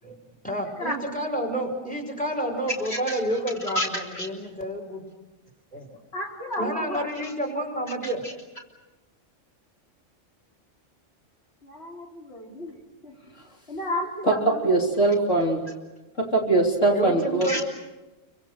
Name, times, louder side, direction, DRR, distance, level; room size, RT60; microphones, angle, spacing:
voice 1, 0.4-3.8 4.2-5.0 5.7-5.8 6.6-8.2 16.9-17.7, right 1 dB, 5° left, 2 dB, 5.5 m, -29 dB
voice 2, 2.8-4.3 6.1-7.3 8.0-8.3 11.6-13.2 13.7-14.8 17.4-17.7, left 1 dB, 55° left, -1 dB, 3.8 m, -33 dB
voice 3, 14.2-15.6 16.2-17.7, right 2 dB, 75° left, -1 dB, 3.8 m, -22 dB
29.0 x 25.0 x 6.6 m, 1.1 s
omnidirectional pair, 1.3 m